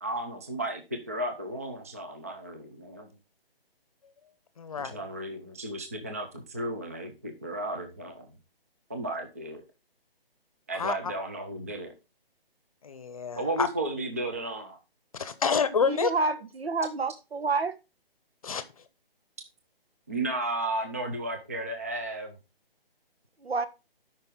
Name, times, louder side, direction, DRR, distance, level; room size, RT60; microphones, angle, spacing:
voice 1, 0.0-3.1 4.8-8.3 8.9-9.6 10.7-11.9 13.4-14.8 20.1-22.4, right 1 dB, 15° right, 0.5 m, -34 dB
voice 2, 4.6-5.0 10.7-11.1 12.8-13.7 15.1-16.1 18.4-18.8, left 5 dB, 35° left, 0.8 m, -28 dB
voice 3, 15.8-17.7 23.4-23.7, right 3 dB, 80° right, 1.4 m, -28 dB
12.5 x 5.4 x 3.7 m
hypercardioid pair, 165°, 30 cm